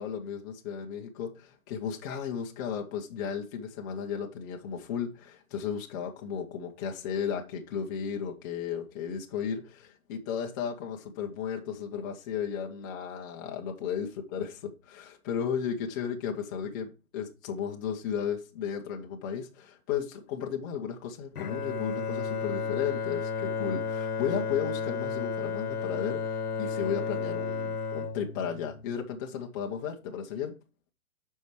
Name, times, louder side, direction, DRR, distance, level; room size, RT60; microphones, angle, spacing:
voice 1, 0.0-14.5 14.9-30.6, left 7 dB, 15° left, 0.7 m, -34 dB
Bowed string instrument, 21.3-29.6, left 5 dB, 85° left, 1.1 m, -33 dB
8.1 x 5.6 x 4.4 m
hypercardioid pair, 155°, 44 cm